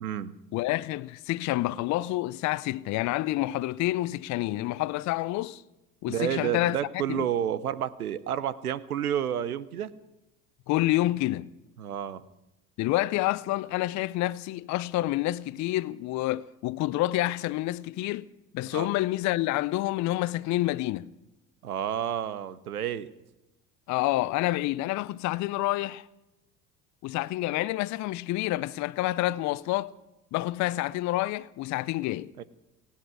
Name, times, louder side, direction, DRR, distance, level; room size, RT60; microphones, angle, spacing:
voice 1, 0.0-0.3 6.1-9.9 11.8-12.2 18.7-18.9 21.6-23.1 32.4-32.5, right 10 dB, 90° right, 0.7 m, -30 dB
voice 2, 0.5-5.6 6.0-6.8 7.1-7.3 10.7-11.5 12.8-18.3 18.5-21.1 23.9-26.1 27.0-29.9 30.3-32.3, left 17 dB, 45° left, 0.5 m, -28 dB
18.5 x 15.5 x 4.8 m
hypercardioid pair, 65°, 43 cm